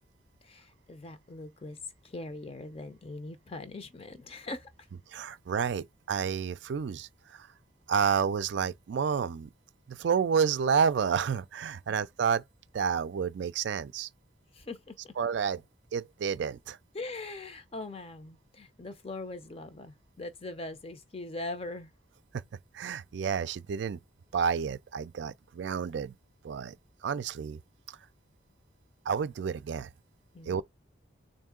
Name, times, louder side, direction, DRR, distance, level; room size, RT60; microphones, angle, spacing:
voice 1, 0.4-4.7 11.9-12.0 14.5-15.1 16.9-21.9 30.3-30.6, left 2 dB, 30° left, 0.6 m, -41 dB
voice 2, 5.1-7.5 7.9-9.5 9.9-12.4 12.7-14.1 15.2-15.6 15.9-16.8 22.7-24.0 24.3-26.2 26.4-26.7 27.0-27.6 27.9-28.0 29.1-29.9 30.5-30.6, right 6 dB, 60° right, 0.3 m, -30 dB
3.7 x 2.6 x 3.6 m
head